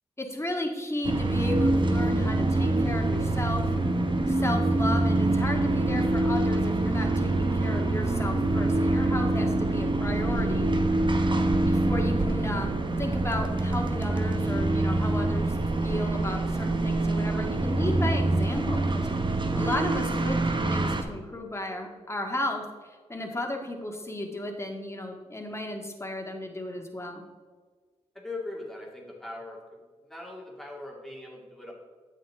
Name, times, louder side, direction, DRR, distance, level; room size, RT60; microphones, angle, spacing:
voice 1, 0.2-3.7 4.3-10.7 11.6-15.6 15.8-19.1 19.5-27.3, left 1 dB, 20° left, 2 dB, 1.8 m, -34 dB
sound 1, 1.0-21.0, right 2 dB, 40° right, 1.1 m, -25 dB
voice 2, 28.1-29.8 30.1-31.7, left 2 dB, 5° left, -3 dB, 2.4 m, -40 dB
8.7 x 7.7 x 3.6 m, 1.5 s
cardioid pair, 45°, 13 cm